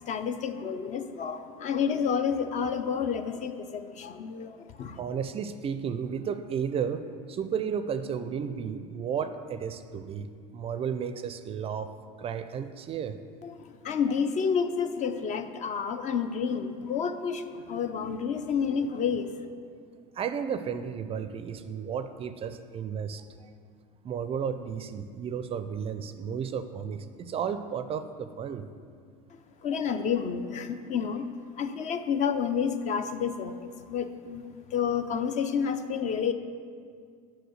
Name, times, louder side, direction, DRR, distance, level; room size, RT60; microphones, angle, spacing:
voice 1, 0.1-5.0 13.4-19.3 29.6-31.3 31.6-36.3, left 6 dB, 40° left, 9 dB, 0.5 m, -30 dB
voice 2, 5.0-10.3 10.5-11.9 12.2-13.2 20.1-23.5 24.0-28.7, right 7 dB, 30° right, 10 dB, 0.4 m, -33 dB
5.8 x 5.1 x 6.4 m, 2.2 s
hypercardioid pair, 85°, 18 cm